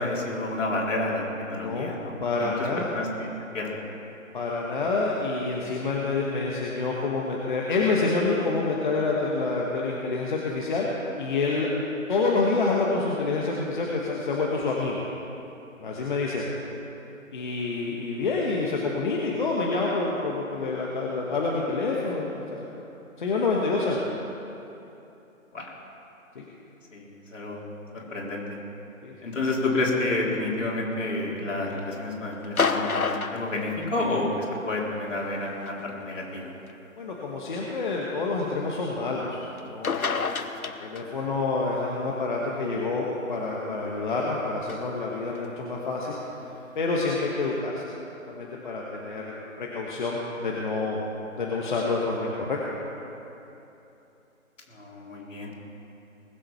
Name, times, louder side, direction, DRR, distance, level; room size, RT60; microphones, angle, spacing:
voice 1, 0.0-2.1 2.4-3.8 25.5-25.7 26.9-27.6 27.9-28.5 29.2-36.5 54.7-55.5, left 2 dB, 60° left, -3 dB, 3.7 m, -30 dB
voice 2, 1.5-1.9 2.2-2.9 4.3-10.9 11.2-11.7 12.1-15.0 15.8-16.5 17.3-22.7 23.2-24.0 26.3-26.4 29.0-29.1 37.0-40.3 40.6-46.2 46.7-47.8 48.3-51.1 51.4-52.6, left 3 dB, 35° left, -3 dB, 1.3 m, -27 dB
sound 1, 32.4-34.4 35.7-35.8 36.7-36.8 39.6-39.7 39.8-41.3 44.7-44.8, left 5 dB, 90° left, 1.0 m, -28 dB
20.5 x 7.6 x 5.8 m, 2.9 s
figure-of-eight pair, 155°, 41 cm